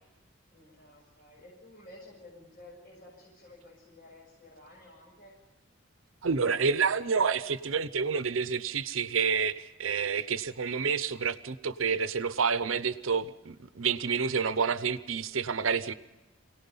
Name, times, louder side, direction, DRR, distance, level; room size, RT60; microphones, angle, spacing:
voice 1, 0.5-5.3, left 1 dB, 45° left, -3 dB, 7.0 m, -53 dB
voice 2, 6.2-15.9, right 5 dB, 80° right, 14 dB, 0.8 m, -29 dB
26.0 x 18.0 x 5.6 m, 1.1 s
head